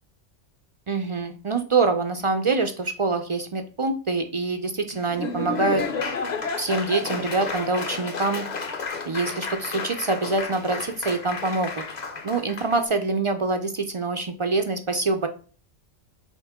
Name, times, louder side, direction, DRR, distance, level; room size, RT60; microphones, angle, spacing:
voice 1, 0.9-5.8 6.6-8.5 9.1-11.8 12.2-15.3, right 3 dB, 60° right, 7 dB, 0.3 m, -25 dB
Laughter / Applause, 4.9-12.8, left 4 dB, 40° left, 0.9 m, -32 dB
8.1 x 3.6 x 3.6 m, 0.40 s
omnidirectional pair, 1.2 m